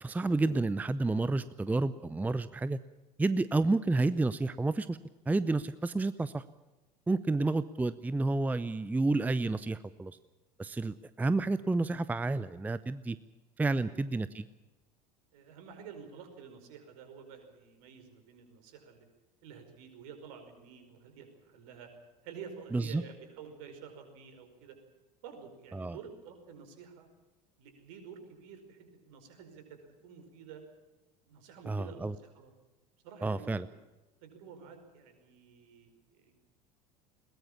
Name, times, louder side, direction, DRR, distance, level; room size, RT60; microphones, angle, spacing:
voice 1, 0.0-2.8 3.2-5.0 5.3-6.4 7.1-10.2 10.6-13.2 13.6-14.4 22.7-23.0 25.7-26.0 31.7-32.1 33.2-33.7, right 3 dB, 10° right, 16 dB, 0.6 m, -30 dB
voice 2, 15.3-19.1 19.4-21.9 22.2-24.8 25.2-27.1 27.6-30.6 31.2-32.5 33.0-33.8 34.2-36.4, right 6 dB, 55° right, 6 dB, 5.3 m, -50 dB
21.5 x 20.0 x 7.2 m, 1.1 s
figure-of-eight pair, 75°, 21 cm